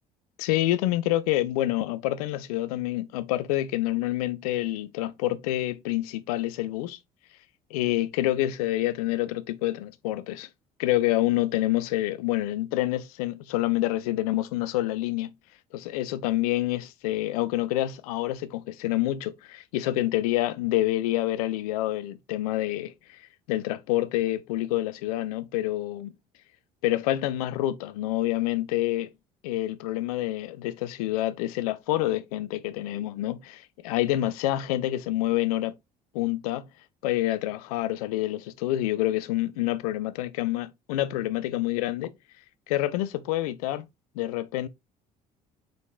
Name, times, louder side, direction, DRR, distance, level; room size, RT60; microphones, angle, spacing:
voice 1, 0.4-7.0 7.7-10.5 10.8-15.3 15.7-26.1 26.8-29.1 29.4-35.7 36.1-36.6 37.0-42.1 42.7-43.9 44.2-44.7, left 15 dB, 65° left, 0.5 m, -27 dB
4.9 x 4.0 x 2.2 m
figure-of-eight pair, 55°, 21 cm